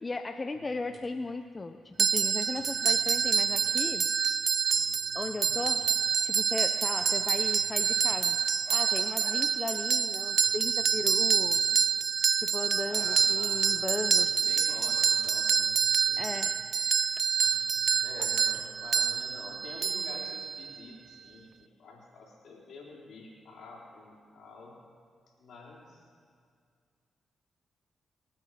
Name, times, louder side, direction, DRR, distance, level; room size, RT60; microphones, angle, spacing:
voice 1, 0.0-4.1 5.1-5.8 6.2-8.4 8.7-11.6 12.4-14.3 16.1-16.5, left 3 dB, 35° left, 8 dB, 0.7 m, -36 dB
sound 1, 0.5-18.9, equal, 35° right, 4.6 m, -58 dB
sound 2, 2.0-20.8, right 7 dB, 60° right, 0.3 m, -27 dB
voice 2, 5.4-5.7 12.8-14.1 14.4-15.8 16.1-16.2 18.0-21.5 21.8-24.8 25.4-26.1, left 3 dB, 70° left, -3 dB, 3.9 m, -48 dB
24.5 x 8.3 x 5.0 m, 2.1 s
supercardioid pair, 50°, 0 cm